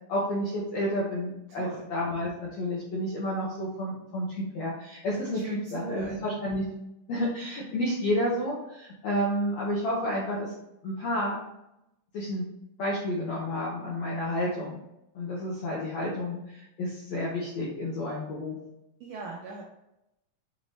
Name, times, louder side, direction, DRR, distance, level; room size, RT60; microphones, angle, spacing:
voice 1, 0.1-5.4 5.7-6.6 7.1-10.5 10.8-11.4 12.1-12.5 12.8-14.8 15.1-18.6, left 1 dB, 75° left, -5 dB, 1.6 m, -30 dB
voice 2, 1.5-1.9 5.3-6.3 19.0-19.6, right 3 dB, 85° right, -2 dB, 1.7 m, -40 dB
6.0 x 3.1 x 2.7 m, 0.87 s
omnidirectional pair, 4.2 m